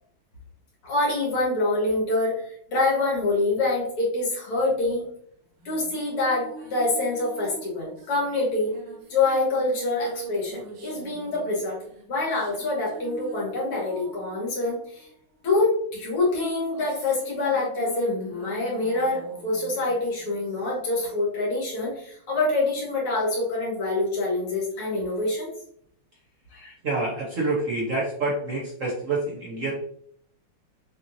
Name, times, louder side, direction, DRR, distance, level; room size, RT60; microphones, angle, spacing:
voice 1, 0.8-5.1 5.7-8.7 9.1-11.8 12.1-15.1 15.4-25.5 26.5-26.7, left 2 dB, 85° left, -4 dB, 2.5 m, -26 dB
sound 1, 5.6-15.5 16.3-21.0, right 3 dB, 85° right, 1.9 m, -44 dB
voice 2, 26.8-29.7, right 2 dB, 55° right, -4 dB, 0.9 m, -27 dB
6.6 x 3.0 x 2.6 m, 0.66 s
omnidirectional pair, 2.4 m